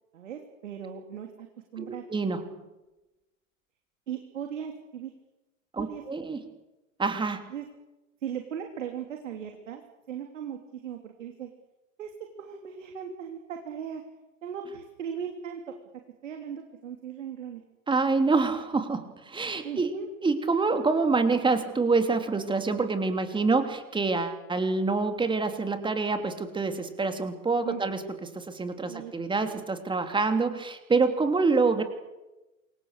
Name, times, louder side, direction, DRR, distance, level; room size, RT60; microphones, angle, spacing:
voice 1, 0.1-1.5 1.7-2.1 4.1-5.1 5.8-6.0 7.5-7.6 8.2-9.8 10.1-11.5 12.0-12.1 12.4-14.0 14.4-15.6 16.2-17.6 19.6-20.1 27.6-27.9 28.9-29.1, right 8 dB, 65° right, 4 dB, 3.2 m, -38 dB
voice 2, 1.8-2.4 5.7-6.4 7.0-7.4 17.9-19.9 20.2-31.8, right 4 dB, 10° right, 7 dB, 3.2 m, -26 dB
28.5 x 24.0 x 6.8 m, 1.0 s
figure-of-eight pair, 95°, 40 cm